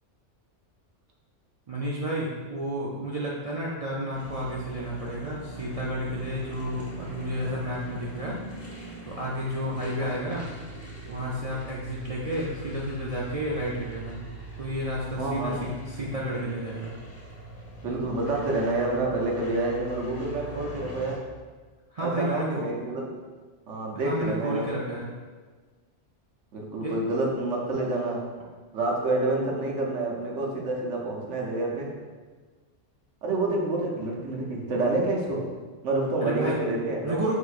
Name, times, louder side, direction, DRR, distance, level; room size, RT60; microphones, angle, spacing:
voice 1, 1.7-8.4 9.1-10.4 11.1-14.2 14.6-16.9 21.9-22.6 23.9-25.1 26.8-27.0 36.2-36.6 37.0-37.3, equal, 60° right, -5 dB, 0.4 m, -31 dB
sound 1, 4.1-21.2, right 2 dB, 15° left, 0.7 m, -41 dB
voice 2, 15.2-15.6 17.8-21.2 22.0-23.0 23.7-24.6 26.5-28.2 28.7-31.9 33.2-35.4 35.8-37.2, right 2 dB, 80° right, -2 dB, 1.1 m, -28 dB
4.7 x 3.6 x 2.4 m, 1.4 s
omnidirectional pair, 1.2 m